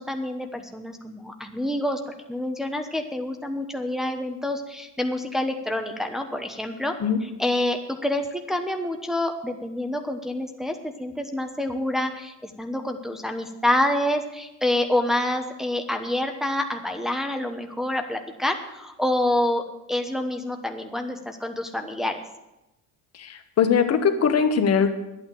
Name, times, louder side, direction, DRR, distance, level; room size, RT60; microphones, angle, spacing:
voice 1, 0.0-2.0 2.3-6.9 7.2-22.2, left 1 dB, ahead, 4 dB, 1.0 m, -27 dB
voice 2, 23.2-24.9, left 6 dB, 40° left, 7 dB, 1.4 m, -21 dB
10.5 x 9.0 x 7.6 m, 0.95 s
cardioid pair, 125°, 38 cm